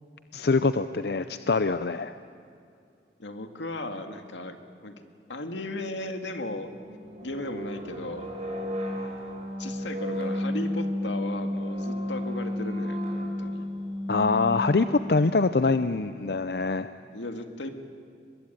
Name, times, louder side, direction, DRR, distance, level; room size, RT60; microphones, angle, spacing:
voice 1, 0.3-2.2 14.1-16.9, left 3 dB, 60° left, 11 dB, 0.6 m, -24 dB
voice 2, 3.2-4.6 4.8-5.0 5.3-6.7 7.2-8.3 9.6-13.7 17.1-17.7, left 2 dB, 85° left, 6 dB, 2.1 m, -36 dB
sound 1, 6.7-15.4, left 1 dB, 35° right, 5.7 m, -32 dB
23.5 x 21.5 x 9.0 m, 2.5 s
head